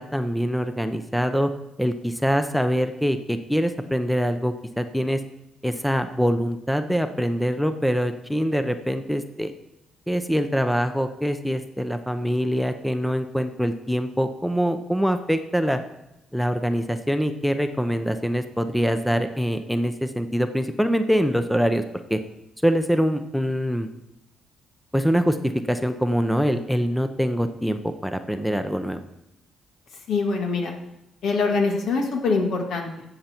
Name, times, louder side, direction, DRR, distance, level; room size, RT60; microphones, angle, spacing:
voice 1, 0.0-1.5 1.8-5.2 5.6-9.5 10.1-15.8 16.3-21.8 22.1-22.2 22.6-23.9 24.9-29.0, equal, ahead, 8 dB, 0.7 m, -24 dB
voice 2, 30.1-30.7 31.2-33.1, left 4 dB, 70° left, 2 dB, 2.0 m, -24 dB
15.5 x 6.9 x 4.5 m, 0.89 s
cardioid pair, 90°, 0 cm